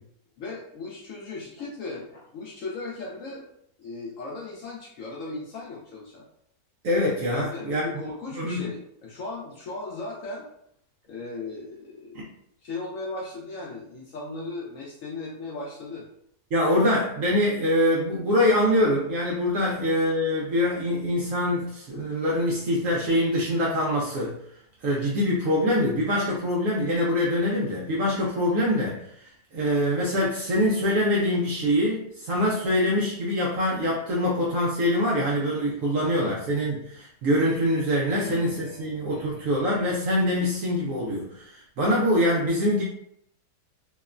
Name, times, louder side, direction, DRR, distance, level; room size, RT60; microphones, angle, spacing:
voice 1, 0.4-3.4 3.8-6.2 7.3-10.5 11.1-12.3 12.6-16.1 19.5-19.8 36.0-36.3 38.1-39.6, left 3 dB, 70° left, -3 dB, 0.7 m, -37 dB
voice 2, 6.8-7.9 8.3-8.6 12.1-12.2 16.5-24.3 24.8-29.0 29.5-42.8, left 1 dB, 70° right, -4 dB, 0.8 m, -24 dB
2.9 x 2.1 x 2.4 m, 0.70 s
omnidirectional pair, 1.8 m